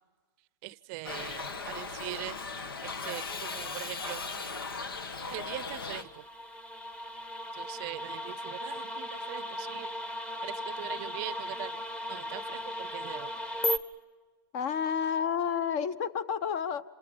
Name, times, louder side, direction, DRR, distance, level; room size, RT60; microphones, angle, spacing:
voice 1, 0.6-2.4 2.8-4.2 5.3-6.2 7.5-9.9 10.4-11.7 12.1-13.3, right 20 dB, 40° right, 19 dB, 0.6 m, -42 dB
Shout / Livestock farm animals working animals, 1.0-6.0, left 4 dB, 85° left, 1.6 m, -38 dB
sound 1, 5.7-13.8, left 1 dB, 10° left, 1.0 m, -36 dB
voice 2, 14.5-16.8, left 7 dB, 45° left, 15 dB, 1.1 m, -30 dB
28.5 x 27.5 x 5.3 m, 1.4 s
hypercardioid pair, 125°, 12 cm